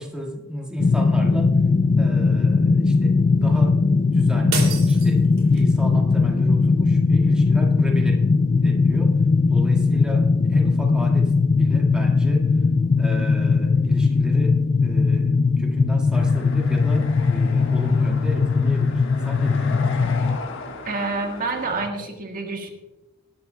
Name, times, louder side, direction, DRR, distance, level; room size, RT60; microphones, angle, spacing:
voice 1, 0.0-1.5 2.0-3.8 4.1-8.3 8.6-9.2 9.5-12.5 13.0-20.1 21.8-21.9, equal, 5° right, -1 dB, 1.9 m, -33 dB
sound 1, 0.8-20.4, left 4 dB, 35° left, 0.3 m, -19 dB
sound 2, 4.5-5.8, right 6 dB, 80° right, 2.8 m, -30 dB
sound 3, 16.1-21.9, left 3 dB, 65° left, 1.5 m, -37 dB
voice 2, 20.8-22.7, right 3 dB, 45° right, 2 dB, 1.6 m, -28 dB
19.5 x 12.0 x 2.3 m, 1.1 s
head